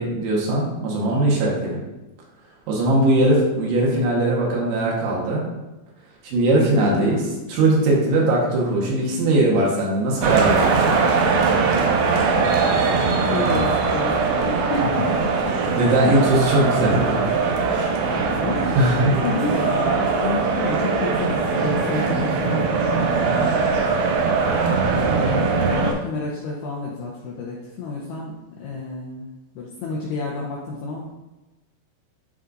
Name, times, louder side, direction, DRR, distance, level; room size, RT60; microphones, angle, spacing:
voice 1, 0.0-1.8 2.7-5.4 6.2-7.2 7.5-11.0 15.8-17.4 17.7-17.9 18.8-19.2, right 1 dB, 70° right, -3 dB, 3.4 m, -20 dB
voice 2, 6.8-7.2 13.2-14.2 14.5-15.6 18.1-18.8 19.2-23.6 25.0-29.3 29.5-31.2, left 3 dB, 80° left, -4 dB, 2.4 m, -30 dB
sound 1, 10.2-25.9, right 4 dB, 90° right, 2.2 m, -21 dB
12.0 x 4.2 x 2.6 m, 1.0 s
omnidirectional pair, 5.8 m